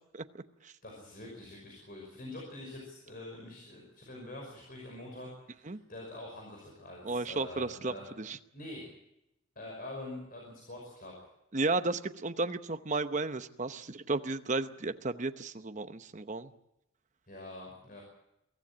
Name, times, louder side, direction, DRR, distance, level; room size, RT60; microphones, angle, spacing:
voice 1, 0.1-0.7 5.7-5.8 7.0-8.4 11.5-16.5, right 3 dB, 35° right, 9 dB, 0.9 m, -34 dB
voice 2, 0.8-8.1 8.5-8.9 9.6-11.1 17.3-18.0, left 1 dB, 45° left, -1 dB, 5.6 m, -45 dB
23.5 x 15.0 x 8.7 m, 0.86 s
head